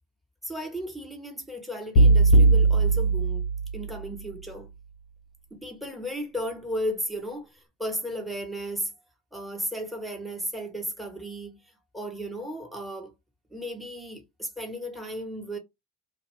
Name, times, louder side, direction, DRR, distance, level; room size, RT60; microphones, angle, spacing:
voice 1, 0.4-3.4 3.7-4.7 5.5-8.9 9.3-11.6 11.9-13.1 13.5-15.6, equal, ahead, 1.1 m, -35 dB
sound 1, 2.0-4.1, right 3 dB, 90° left, 0.7 m, -19 dB
2.5 x 2.4 x 3.1 m
hypercardioid pair, 60°, 48 cm